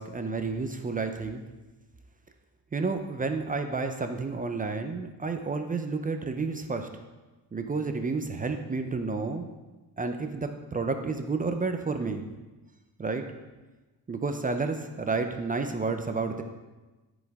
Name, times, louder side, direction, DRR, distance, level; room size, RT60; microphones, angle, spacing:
voice 1, 0.0-1.4 2.7-6.9 7.5-9.5 10.0-12.3 13.0-13.3 14.1-16.4, right 4 dB, 20° right, 6 dB, 0.6 m, -30 dB
13.0 x 5.2 x 3.5 m, 1.2 s
cardioid pair, 110°, 39 cm